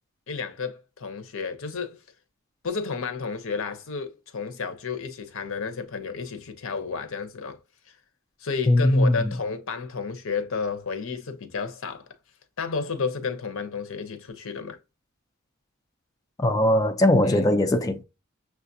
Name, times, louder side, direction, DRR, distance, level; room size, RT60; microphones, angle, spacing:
voice 1, 0.3-2.0 2.6-7.6 8.4-12.1 12.6-14.8 17.2-17.4, left 5 dB, 65° left, 0.7 m, -32 dB
voice 2, 8.7-9.3 16.4-18.0, left 1 dB, 15° left, 0.4 m, -20 dB
6.4 x 2.4 x 2.7 m
head